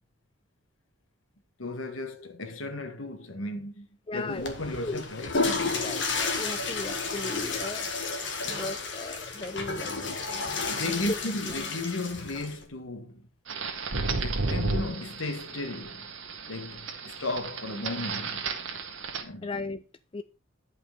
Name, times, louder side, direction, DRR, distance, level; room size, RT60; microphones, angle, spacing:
voice 1, 1.6-5.3 10.5-13.3 14.2-16.1 16.5-18.5 19.2-19.5, left 2 dB, 85° left, 1.6 m, -35 dB
voice 2, 4.1-4.5 4.8-5.0 5.7-7.9 8.5-10.2 11.0-11.2 11.5-11.6 19.4-19.9 20.1-20.2, left 2 dB, 25° left, 0.4 m, -36 dB
Water / Toilet flush, 4.3-12.7, left 4 dB, 60° left, 1.9 m, -32 dB
sound 1, 13.5-19.2, right 3 dB, 75° right, 1.7 m, -33 dB
10.5 x 5.6 x 5.2 m
head